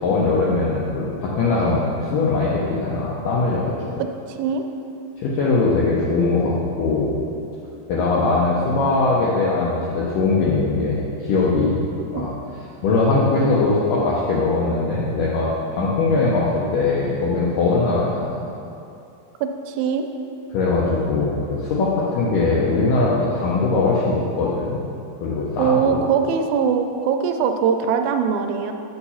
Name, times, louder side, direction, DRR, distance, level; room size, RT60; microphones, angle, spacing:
voice 1, 0.0-3.7 5.2-7.2 7.9-11.8 12.1-12.3 12.8-18.4 20.5-24.8 25.2-26.0, left 3 dB, 75° left, -5 dB, 2.1 m, -21 dB
voice 2, 4.3-4.6 12.1-12.2 19.4-20.1 25.6-28.7, right 6 dB, 80° right, 6 dB, 2.2 m, -21 dB
7.3 x 5.6 x 5.5 m, 2.7 s
omnidirectional pair, 4.5 m